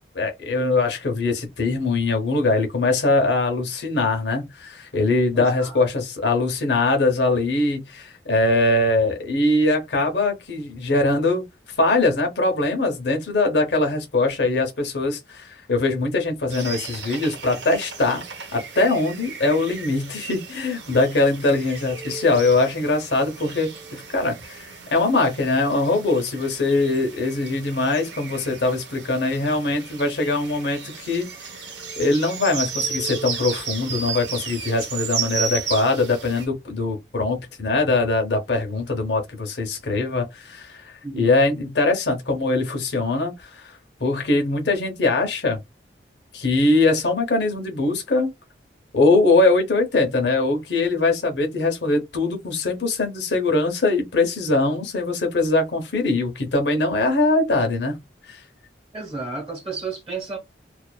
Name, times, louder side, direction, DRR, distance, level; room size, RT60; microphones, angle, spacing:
voice 1, 0.0-11.4 11.8-18.2 18.5-31.6 32.0-43.7 44.0-45.6 46.3-48.3 48.9-58.0 58.3-58.4, left 2 dB, 70° left, 0.8 m, -22 dB
voice 2, 5.3-5.8 41.0-41.3 58.9-60.4, right 4 dB, 35° right, 0.9 m, -32 dB
sound 1, 16.5-36.5, right 6 dB, 75° right, 0.9 m, -34 dB
2.4 x 2.4 x 2.2 m
head